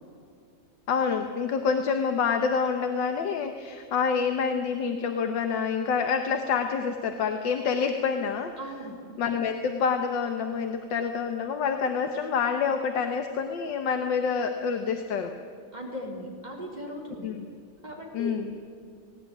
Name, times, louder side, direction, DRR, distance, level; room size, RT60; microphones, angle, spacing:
voice 1, 0.9-8.5 9.2-15.3 17.2-17.5 18.1-18.5, left 6 dB, 85° left, 6 dB, 1.8 m, -27 dB
voice 2, 8.6-9.0 15.7-17.3 17.8-18.6, equal, 25° right, -2 dB, 4.4 m, -38 dB
19.0 x 18.5 x 9.5 m, 2.3 s
omnidirectional pair, 1.9 m